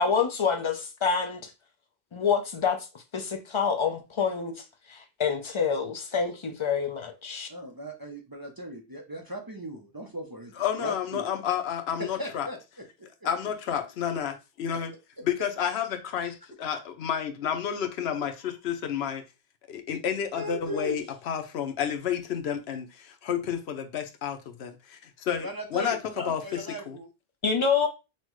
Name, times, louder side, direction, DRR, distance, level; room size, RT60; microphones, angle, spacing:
voice 1, 0.0-1.5 2.1-2.8 3.1-7.5 27.4-27.9, left 6 dB, 35° left, 0.6 m, -27 dB
voice 2, 7.5-11.3 12.0-12.8 20.3-21.0 25.4-27.1, equal, 25° right, 0.5 m, -37 dB
voice 3, 10.6-12.5 13.2-14.9 15.2-19.2 19.7-27.0, left 8 dB, 85° left, 0.9 m, -31 dB
5.7 x 2.1 x 3.1 m
omnidirectional pair, 1.0 m